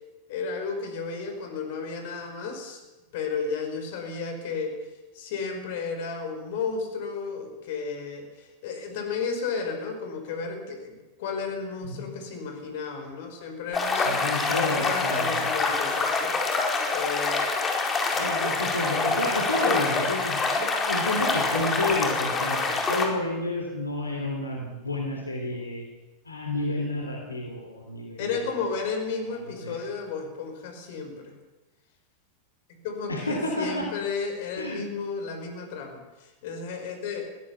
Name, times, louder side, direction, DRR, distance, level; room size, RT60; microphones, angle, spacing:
voice 1, 0.3-2.8 3.1-4.9 5.1-14.1 14.5-16.6 16.9-17.6 19.6-19.9 28.2-31.3 32.8-37.3, left 5 dB, 55° left, 5 dB, 5.4 m, -33 dB
sound 1, 13.7-23.1, left 3 dB, 20° left, 4.5 m, -26 dB
voice 2, 14.1-15.5 18.1-25.9 26.3-28.5 29.4-29.8 33.1-33.9 34.6-34.8, left 1 dB, 85° left, 1 dB, 3.5 m, -31 dB
21.5 x 16.5 x 7.2 m, 1.1 s
figure-of-eight pair, 90°, 0 cm